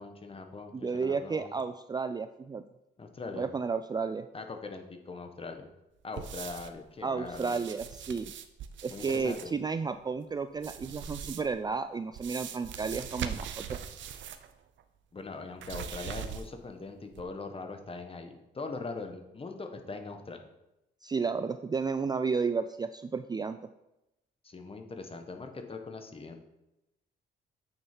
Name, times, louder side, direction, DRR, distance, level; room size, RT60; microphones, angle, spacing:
voice 1, 0.0-1.5 3.0-3.5 4.3-5.7 6.0-7.6 8.9-9.5 15.1-20.4 24.4-26.4, left 3 dB, 30° left, 5 dB, 1.3 m, -41 dB
voice 2, 0.7-2.6 3.3-4.3 7.0-8.3 8.8-13.8 21.0-23.6, right 5 dB, 20° right, 10 dB, 0.3 m, -32 dB
sound 1, 6.2-6.8 7.2-9.5 10.6-11.6 12.1-14.5 14.8-14.9 15.6-16.7 17.1-17.2, right 8 dB, 70° right, 0.8 m, -41 dB
8.8 x 6.6 x 4.5 m, 0.92 s
cardioid pair, 90°, 20 cm